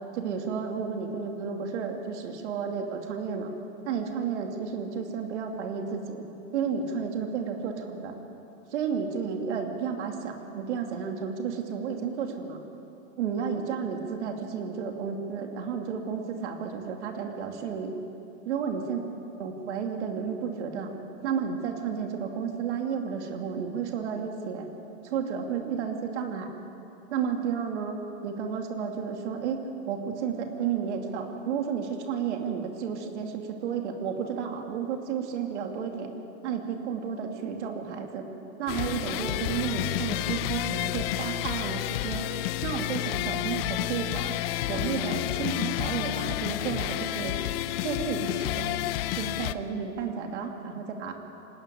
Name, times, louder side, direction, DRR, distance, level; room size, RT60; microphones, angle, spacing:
voice 1, 0.1-3.5 3.8-6.2 6.5-8.1 8.7-12.6 13.2-17.9 18.4-19.0 19.4-20.9 21.2-24.7 25.0-26.5 27.1-36.1 36.4-38.2 38.6-42.3 42.6-44.3 44.7-47.3 47.8-48.8 49.2-51.1, right 6 dB, 75° right, 3 dB, 2.7 m, -32 dB
sound 1, 38.7-49.5, left 14 dB, 55° left, 0.8 m, -30 dB
25.5 x 11.5 x 9.9 m, 2.8 s
supercardioid pair, 145°, 35 cm